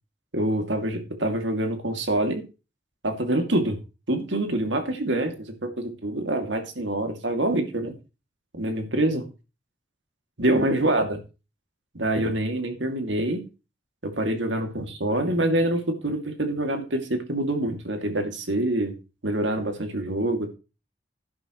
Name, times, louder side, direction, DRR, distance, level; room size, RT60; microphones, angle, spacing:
voice 1, 0.3-2.4 3.0-3.8 4.1-7.9 8.5-9.3 10.4-11.2 11.9-13.4 14.0-18.9 19.2-20.6, right 1 dB, 85° right, 5 dB, 2.5 m, -26 dB
11.5 x 11.0 x 3.1 m, 0.30 s
head